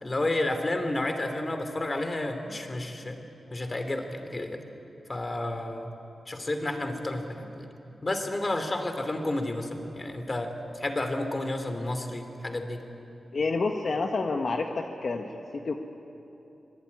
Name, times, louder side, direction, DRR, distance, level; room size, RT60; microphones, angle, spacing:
voice 1, 0.0-3.2 3.5-4.6 5.1-5.9 6.3-7.7 8.0-10.5 10.8-12.8, left 1 dB, 30° left, 7 dB, 2.8 m, -31 dB
voice 2, 13.3-15.7, left 3 dB, 55° left, 3 dB, 1.4 m, -29 dB
25.0 x 20.5 x 9.7 m, 2.9 s
wide cardioid pair, 100°, 0 cm